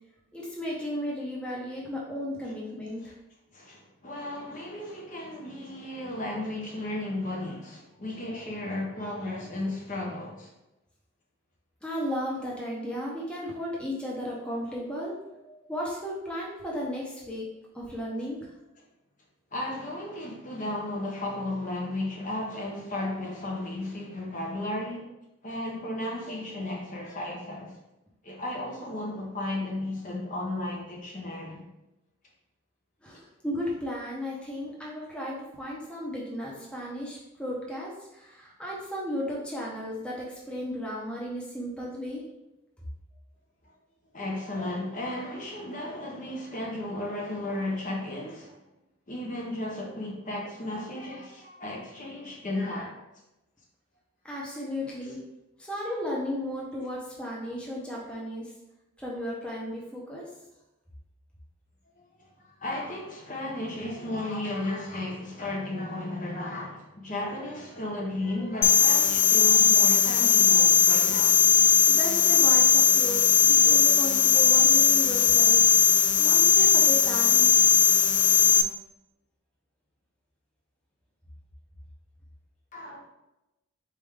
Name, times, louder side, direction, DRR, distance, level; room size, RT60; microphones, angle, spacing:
voice 1, 0.3-3.1 11.8-17.5 17.7-18.5 33.0-42.2 54.2-55.2 55.6-58.5 59.0-60.3 71.8-75.7 76.2-77.5, equal, 5° left, -5 dB, 0.7 m, -35 dB
voice 2, 3.5-10.5 19.5-25.1 25.4-27.8 28.2-31.7 43.6-43.7 44.1-48.6 49.1-53.0 62.0-71.3 82.7-83.0, left 1 dB, 35° left, -1 dB, 0.7 m, -34 dB
sound 1, 68.6-78.6, left 8 dB, 60° left, 0.3 m, -19 dB
4.4 x 3.5 x 3.5 m, 0.94 s
head